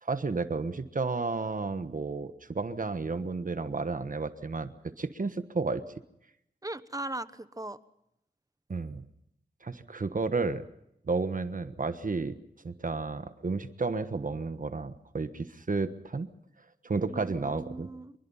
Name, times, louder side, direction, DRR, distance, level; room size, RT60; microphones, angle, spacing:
voice 1, 0.0-4.7 5.0-5.8 8.7-9.0 9.6-10.6 11.1-12.3 12.6-16.3 16.8-17.9, right 4 dB, 50° right, 11 dB, 1.3 m, -32 dB
voice 2, 6.6-7.8 17.1-18.1, right 2 dB, 20° right, 13 dB, 1.1 m, -38 dB
25.5 x 22.5 x 5.6 m, 0.78 s
wide cardioid pair, 60°, 17 cm